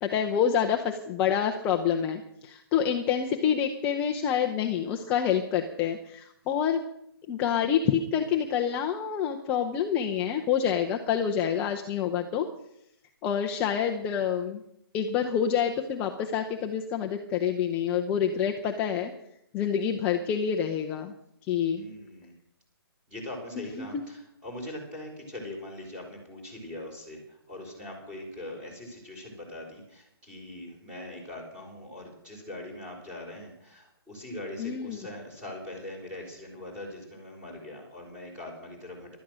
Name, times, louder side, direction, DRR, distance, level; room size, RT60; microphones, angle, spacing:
voice 1, 0.0-6.8 7.3-12.5 13.2-14.6 14.9-19.1 19.5-21.1 21.5-21.8 34.6-35.0, left 8 dB, 10° left, 3 dB, 0.5 m, -27 dB
voice 2, 21.8-22.3 23.1-39.2, left 1 dB, 10° right, 0 dB, 4.1 m, -41 dB
16.0 x 12.0 x 6.2 m, 0.76 s
hypercardioid pair, 170°, 13 cm